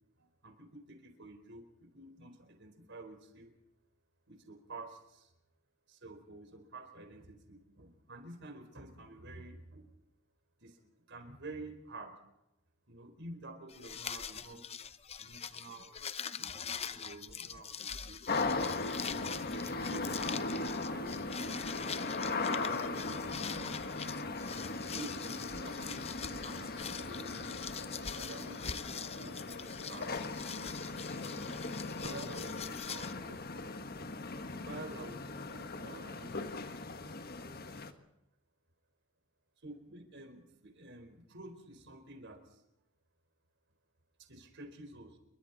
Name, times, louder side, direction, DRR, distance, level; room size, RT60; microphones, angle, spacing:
voice 1, 0.2-3.5 4.3-5.3 5.9-9.9 10.6-10.8 11.1-12.2 12.9-14.6 15.2-15.9 16.4-18.2 19.0-20.3 20.9-22.2 22.6-23.4 24.9-27.6 28.0-28.8 29.1-30.1 31.3-33.4 34.4-36.8 39.6-42.6 44.2-45.2, right 2 dB, 55° right, 6 dB, 4.5 m, -50 dB
sound 1, 13.7-33.1, left 7 dB, 30° left, 0.8 m, -44 dB
sound 2, 18.3-37.9, left 3 dB, 45° left, 1.6 m, -38 dB
28.5 x 24.0 x 4.2 m, 0.90 s
head